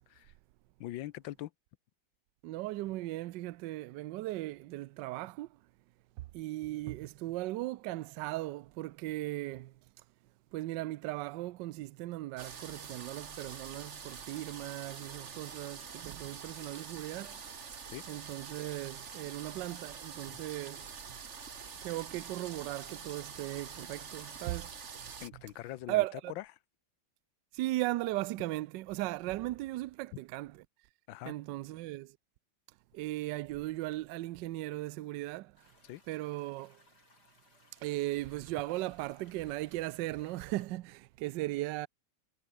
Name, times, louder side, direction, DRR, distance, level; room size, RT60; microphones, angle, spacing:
voice 1, 0.8-1.5 17.9-18.0 25.2-26.4 30.1-30.2 31.1-31.3 35.8-36.0, left 15 dB, 75° left, 1.4 m, -42 dB
voice 2, 2.4-5.5 6.3-9.7 10.5-17.4 18.1-20.9 21.8-25.0 25.9-26.3 27.5-30.5 31.3-32.2 32.9-35.5 36.1-36.8 37.8-41.9, right 17 dB, 75° right, 1.2 m, -37 dB
sound 1, 12.4-25.3, right 6 dB, 40° right, 1.6 m, -46 dB
sound 2, 35.6-40.7, left 2 dB, 55° left, 6.8 m, -65 dB
omnidirectional pair, 2.1 m